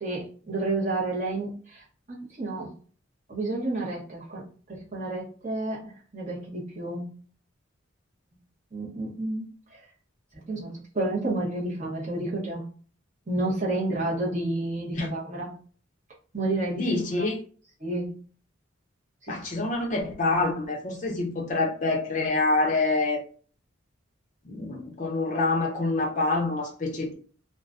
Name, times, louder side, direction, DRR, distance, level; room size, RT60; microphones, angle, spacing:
voice 1, 0.0-1.8 2.1-2.7 3.3-4.4 4.7-7.1 8.7-9.5 10.3-12.6 13.3-15.6 16.3-16.9 17.2-17.3 17.8-18.1 19.3-19.4, right 2 dB, 35° right, -5 dB, 0.9 m, -30 dB
voice 2, 16.8-17.4 19.3-23.2 24.4-27.1, left 2 dB, 40° left, 1 dB, 0.6 m, -26 dB
2.4 x 2.1 x 2.4 m, 0.42 s
head